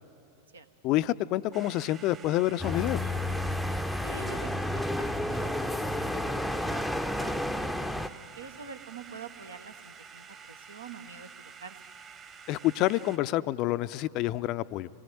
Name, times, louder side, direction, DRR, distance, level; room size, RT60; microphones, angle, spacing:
voice 1, 0.8-3.0 12.5-14.9, left 15 dB, 40° left, 15 dB, 0.5 m, -28 dB
sound 1, 1.5-13.2, right 6 dB, 30° right, 1.4 m, -49 dB
sound 2, 2.6-8.1, left 1 dB, ahead, 0.7 m, -31 dB
voice 2, 4.0-7.7 8.4-11.8, right 5 dB, 75° right, 9 dB, 1.2 m, -47 dB
26.5 x 20.0 x 9.2 m, 2.6 s
figure-of-eight pair, 90°, 0 cm